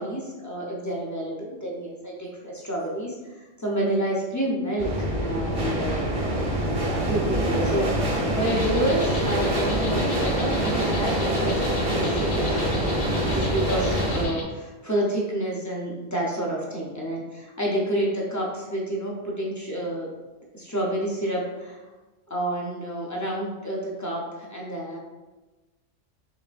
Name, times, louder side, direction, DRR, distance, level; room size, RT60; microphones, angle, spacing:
voice 1, 0.0-4.9 5.2-6.0 7.0-12.4 12.8-20.1 20.5-21.8 22.3-25.0, right 1 dB, 20° left, -4 dB, 0.5 m, -29 dB
sound 1, 4.8-14.3, right 1 dB, 40° right, 0.6 m, -25 dB
sound 2, 8.4-14.4, left 3 dB, 85° left, 1.1 m, -36 dB
4.8 x 3.2 x 2.5 m, 1.2 s
omnidirectional pair, 1.3 m